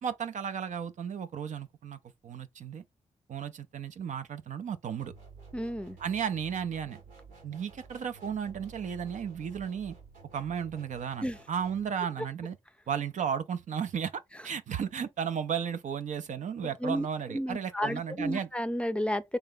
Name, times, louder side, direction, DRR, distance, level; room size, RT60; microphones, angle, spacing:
voice 1, 0.0-2.8 3.3-5.1 6.0-7.0 7.4-10.0 10.3-12.6 12.9-18.5, right 7 dB, 65° right, 0.5 m, -34 dB
sound 1, 5.0-11.9, right 4 dB, 90° right, 1.4 m, -52 dB
voice 2, 5.5-6.0 11.2-11.4 16.8-19.4, equal, 10° left, 0.5 m, -32 dB
3.4 x 3.3 x 3.8 m
supercardioid pair, 45°, 14 cm